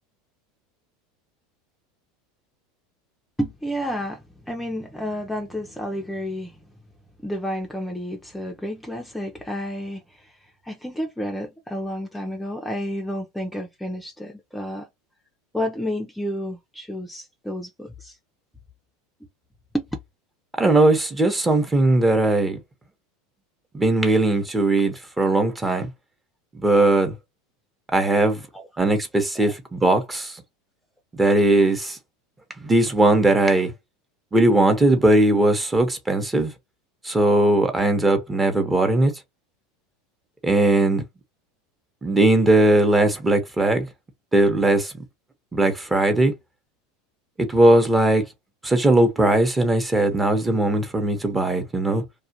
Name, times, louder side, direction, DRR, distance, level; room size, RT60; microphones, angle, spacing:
voice 1, 3.4-6.6 7.2-10.4 10.6-14.9 15.5-18.2 19.7-19.9 28.5-28.6 29.3-29.5, equal, 5° left, 0.6 m, -30 dB
voice 2, 20.6-22.6 23.7-25.9 26.5-27.2 27.9-28.4 28.8-30.4 31.1-32.0 32.6-33.7 34.3-36.5 37.0-39.1 40.4-41.0 42.0-43.9 44.3-44.9 45.5-46.3 47.4-48.2 48.6-52.0, right 2 dB, 15° right, 0.8 m, -19 dB
2.4 x 2.2 x 2.8 m
hypercardioid pair, 100°, 0 cm